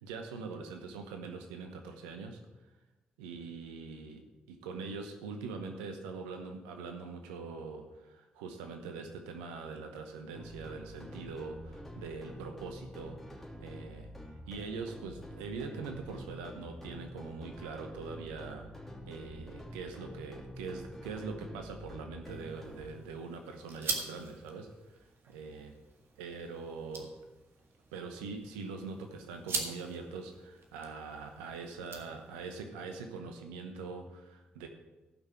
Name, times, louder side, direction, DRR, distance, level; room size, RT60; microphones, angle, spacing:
voice 1, 0.0-2.4 3.2-13.3 13.6-14.1 14.5-18.7 19.1-24.7 25.3-25.7 26.2-27.1 27.9-34.7, right 4 dB, 90° right, 5 dB, 1.0 m, -43 dB
sound 1, 10.3-22.9, equal, 5° left, 2.7 m, -47 dB
sound 2, 22.2-32.6, right 3 dB, 60° right, 1.8 m, -44 dB
14.0 x 6.0 x 5.9 m, 1.1 s
hypercardioid pair, 40°, 5 cm